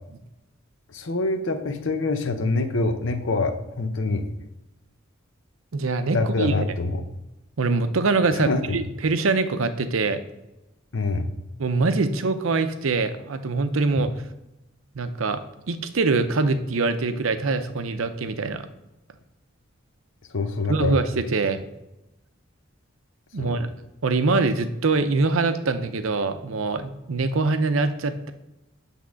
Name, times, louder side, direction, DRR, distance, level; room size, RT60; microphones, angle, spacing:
voice 1, 0.9-4.3 6.1-7.0 8.4-8.8 10.9-11.3 20.3-21.0 23.4-23.6, left 3 dB, 65° left, 8 dB, 0.7 m, -25 dB
voice 2, 5.7-6.6 7.6-10.2 11.6-14.2 14.9-18.7 20.7-21.6 23.3-23.7 24.0-28.3, right 3 dB, 75° right, 10 dB, 0.6 m, -24 dB
8.3 x 3.6 x 6.2 m, 0.96 s
head